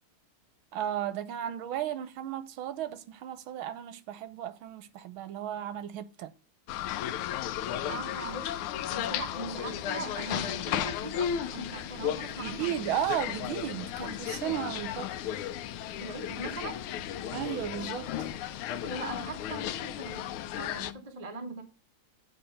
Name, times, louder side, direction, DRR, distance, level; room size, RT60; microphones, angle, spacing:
voice 1, 0.7-6.3 12.4-15.1 17.3-18.3, right 10 dB, 80° right, 1.6 m, -34 dB
sound 1, 6.7-20.9, left 10 dB, 90° left, 1.5 m, -34 dB
voice 2, 7.9-12.8 16.0-16.8 18.8-21.6, right 3 dB, 30° right, 0.7 m, -40 dB
8.0 x 4.5 x 6.4 m
omnidirectional pair, 2.3 m